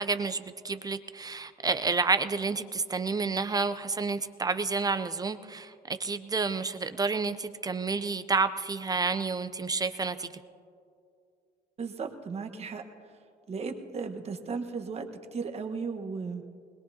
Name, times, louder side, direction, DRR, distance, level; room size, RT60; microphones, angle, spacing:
voice 1, 0.0-10.3, right 4 dB, 20° right, 11 dB, 0.5 m, -30 dB
voice 2, 11.8-12.8 13.5-16.4, right 5 dB, 40° right, 5 dB, 1.3 m, -35 dB
21.5 x 21.0 x 2.8 m, 2.4 s
cardioid pair, 110°, 17 cm